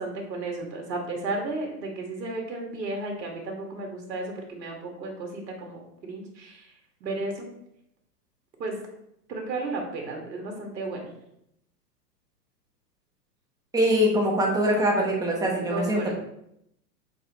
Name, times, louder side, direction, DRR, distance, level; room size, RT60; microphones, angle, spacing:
voice 1, 0.0-6.7 7.0-7.5 8.6-8.8 9.3-11.0 15.7-16.1, right 2 dB, 80° right, 1 dB, 2.1 m, -33 dB
voice 2, 13.7-16.1, equal, 5° right, -1 dB, 1.2 m, -23 dB
7.7 x 4.3 x 3.1 m, 0.77 s
hypercardioid pair, 135°, 50 cm